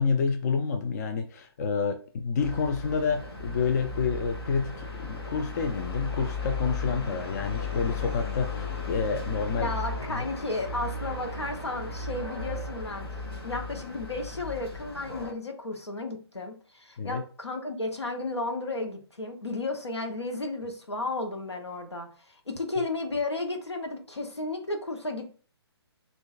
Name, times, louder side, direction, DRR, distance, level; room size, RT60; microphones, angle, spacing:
voice 1, 0.0-9.7 10.1-10.2 17.0-17.2, left 5 dB, 40° left, 6 dB, 0.4 m, -29 dB
sound 1, 2.4-15.3, left 3 dB, 65° left, 1.1 m, -35 dB
voice 2, 9.6-13.1 13.4-25.3, left 2 dB, 85° left, 3 dB, 0.9 m, -33 dB
6.1 x 2.5 x 2.4 m, 0.40 s
figure-of-eight pair, 130°, 14 cm